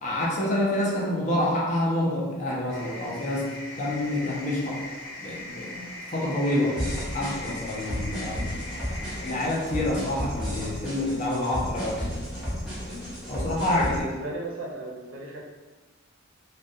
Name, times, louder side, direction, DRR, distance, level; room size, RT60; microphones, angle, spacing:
voice 1, 0.0-4.9 5.2-6.8 7.1-8.5 9.2-12.1 13.3-14.0, left 1 dB, 35° left, -4 dB, 0.4 m, -27 dB
sound 1, 2.7-11.5, left 2 dB, 75° left, 0.8 m, -41 dB
sound 2, 6.7-14.0, equal, 5° right, 0.7 m, -33 dB
voice 2, 13.7-15.4, right 1 dB, 65° right, -2 dB, 0.5 m, -35 dB
2.2 x 2.1 x 2.6 m, 1.2 s
head